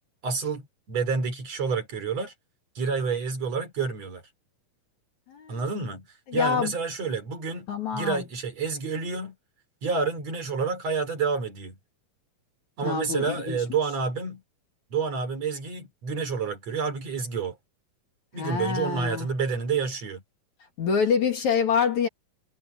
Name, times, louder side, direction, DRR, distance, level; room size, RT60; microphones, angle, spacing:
voice 1, 0.2-2.3 2.8-4.2 5.5-6.1 6.3-9.3 9.8-11.8 12.8-14.4 14.9-17.6 18.3-20.2, right 5 dB, 45° right, 4.7 m, -29 dB
voice 2, 5.3-5.6 6.3-6.7 7.7-8.2 12.8-13.6 18.4-19.3 20.8-22.1, left 6 dB, 55° left, 3.6 m, -26 dB
omnidirectional pair, 4.1 m